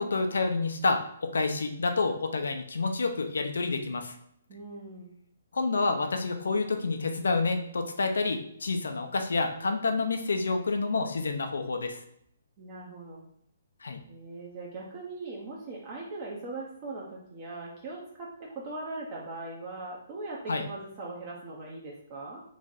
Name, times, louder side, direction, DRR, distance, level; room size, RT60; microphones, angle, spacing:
voice 1, 0.0-4.1 5.5-12.0 13.8-14.0 20.5-20.6, left 3 dB, 85° left, 6 dB, 0.6 m, -28 dB
voice 2, 4.5-5.1 12.6-13.3 14.1-22.4, right 2 dB, 35° right, -3 dB, 0.7 m, -40 dB
3.1 x 2.5 x 4.0 m, 0.72 s
hypercardioid pair, 150°, 0 cm